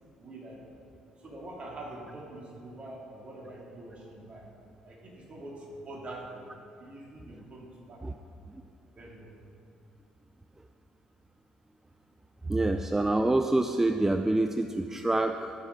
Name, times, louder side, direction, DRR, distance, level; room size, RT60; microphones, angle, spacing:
voice 1, 0.2-0.6 1.2-4.5 4.8-6.4 6.8-8.0 8.9-9.3, right 1 dB, 45° right, -2 dB, 3.1 m, -44 dB
voice 2, 12.5-15.5, right 2 dB, 15° right, 7 dB, 0.5 m, -26 dB
13.5 x 7.3 x 5.4 m, 2.5 s
hypercardioid pair, 60°, 3 cm